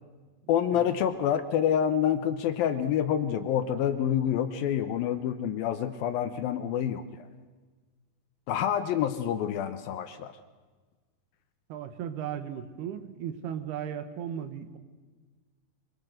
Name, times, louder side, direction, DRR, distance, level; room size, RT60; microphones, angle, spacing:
voice 1, 0.5-7.0 8.5-10.3, left 9 dB, 75° left, 10 dB, 2.4 m, -27 dB
voice 2, 11.7-14.8, right 9 dB, 75° right, 10 dB, 3.2 m, -36 dB
24.5 x 22.0 x 7.8 m, 1.4 s
omnidirectional pair, 4.8 m